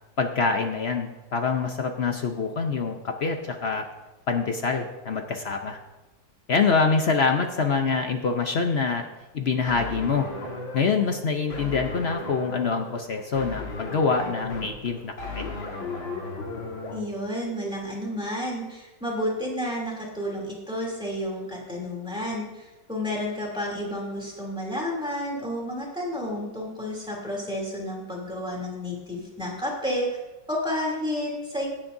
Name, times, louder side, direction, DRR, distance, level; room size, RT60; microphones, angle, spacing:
voice 1, 0.2-3.9 4.3-5.8 6.5-9.0 9.3-10.3 10.7-15.5, left 4 dB, 65° left, 5 dB, 0.6 m, -25 dB
sound 1, 9.7-17.0, left 3 dB, 85° left, 2.6 m, -36 dB
voice 2, 16.9-30.1 30.5-31.7, left 1 dB, ahead, -3 dB, 2.8 m, -31 dB
16.5 x 9.8 x 2.7 m, 1.1 s
omnidirectional pair, 2.1 m